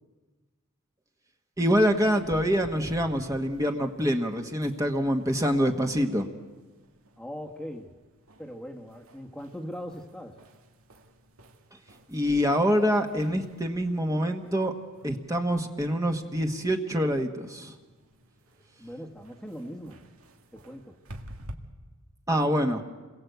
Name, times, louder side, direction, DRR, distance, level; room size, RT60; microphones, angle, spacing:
voice 1, 1.6-6.3 11.7-14.7 15.0-17.8 18.7-18.9 22.3-22.8, equal, 15° right, 4 dB, 1.5 m, -26 dB
sound 1, 1.7-21.5, right 1 dB, 80° right, 2.2 m, -52 dB
voice 2, 7.2-7.9 8.4-10.4 18.8-20.0 20.5-21.0, equal, 5° left, 2 dB, 1.4 m, -40 dB
28.5 x 22.0 x 8.1 m, 1.3 s
head